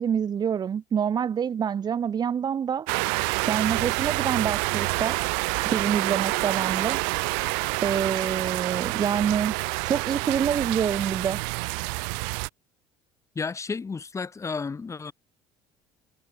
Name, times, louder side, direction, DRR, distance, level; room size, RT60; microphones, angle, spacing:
voice 1, 0.0-2.9 3.5-5.2 5.6-7.0 7.8-11.4, right 8 dB, 35° right, 0.8 m, -26 dB
sound 1, 2.9-12.5, right 40 dB or more, 80° right, 0.8 m, -28 dB
voice 2, 13.3-15.1, left 4 dB, 25° left, 3.4 m, -32 dB
supercardioid pair, 90°, 12 cm